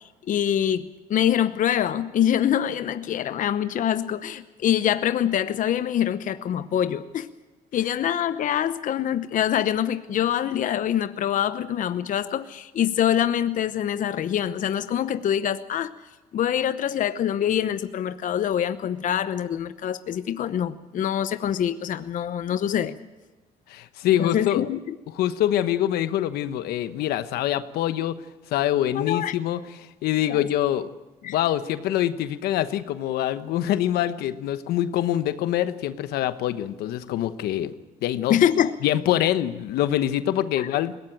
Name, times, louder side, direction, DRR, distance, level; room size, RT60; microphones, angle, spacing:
voice 1, 0.3-7.3 7.7-15.9 16.3-23.0 24.2-24.9 28.9-29.3 30.3-30.5 31.2-31.4 38.3-38.7 40.6-40.7, left 10 dB, 55° left, 12 dB, 0.9 m, -25 dB
voice 2, 23.7-24.6 25.1-28.1 28.5-29.6 30.0-30.9 31.2-37.7 38.0-38.4 38.8-41.0, left 12 dB, 80° left, 12 dB, 1.1 m, -25 dB
21.0 x 18.0 x 8.8 m, 1.1 s
supercardioid pair, 85°, 16 cm